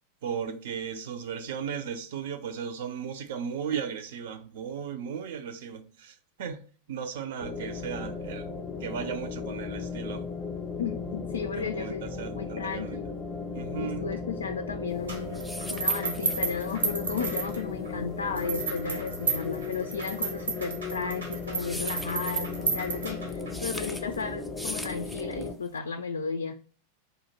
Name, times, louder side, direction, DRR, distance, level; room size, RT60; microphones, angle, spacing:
voice 1, 0.2-8.5 8.8-10.3 11.5-13.0 13.5-14.2, right 7 dB, 55° right, 0.5 m, -36 dB
sound 1, 7.4-25.5, left 4 dB, 20° left, 0.7 m, -36 dB
voice 2, 10.8-12.1 12.3-13.0 13.8-26.6, left 5 dB, 70° left, 0.3 m, -34 dB
sound 2, 15.0-25.8, equal, ahead, 0.4 m, -42 dB
sound 3, 15.1-17.9 18.4-23.5, right 5 dB, 75° right, 1.1 m, -32 dB
3.9 x 2.8 x 4.0 m
figure-of-eight pair, 90°, 0 cm